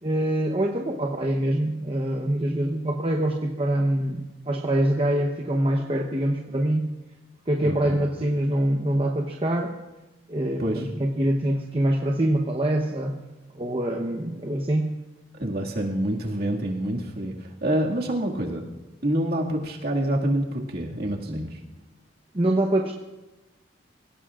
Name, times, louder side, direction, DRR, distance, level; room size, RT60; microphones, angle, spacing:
voice 1, 0.0-6.9 7.5-9.7 10.3-13.2 13.5-14.9 22.3-22.9, right 1 dB, 30° right, 0 dB, 0.9 m, -24 dB
voice 2, 7.6-8.0 10.6-10.9 15.4-18.6 19.0-21.6, right 1 dB, 50° right, -1 dB, 2.1 m, -27 dB
26.5 x 17.0 x 2.5 m, 1.1 s
head